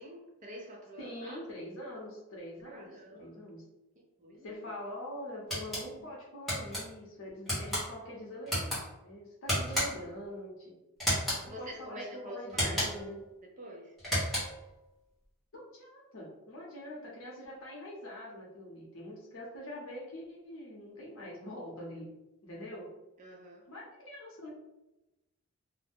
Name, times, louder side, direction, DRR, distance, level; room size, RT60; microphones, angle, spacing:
voice 1, 0.0-1.4 2.6-3.4 4.2-4.6 11.4-12.9 13.4-14.0 23.2-23.7, equal, 35° right, 0 dB, 0.5 m, -46 dB
voice 2, 1.0-3.6 4.4-10.8 11.6-13.2 15.5-22.1 22.4-22.9 23.7-24.5, left 1 dB, 65° left, -3 dB, 0.7 m, -44 dB
sound 1, 5.5-5.8 6.5-6.8 7.5-7.8 8.5-8.8 9.5-10.1 11.0-11.4 12.5-13.1 14.0-14.6, equal, ahead, 0.9 m, -32 dB
2.4 x 2.1 x 3.4 m, 0.97 s
head